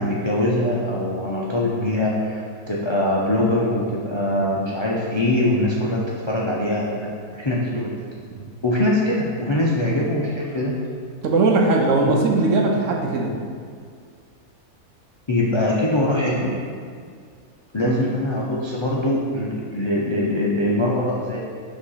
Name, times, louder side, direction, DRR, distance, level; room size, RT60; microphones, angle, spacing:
voice 1, 0.0-8.0 8.6-10.8 12.1-12.2 15.3-16.6 17.7-21.4, left 1 dB, 50° left, -5 dB, 0.3 m, -22 dB
voice 2, 11.2-13.4 17.8-18.0, right 3 dB, 65° right, 1 dB, 0.9 m, -19 dB
6.3 x 3.2 x 5.6 m, 2.1 s
omnidirectional pair, 1.6 m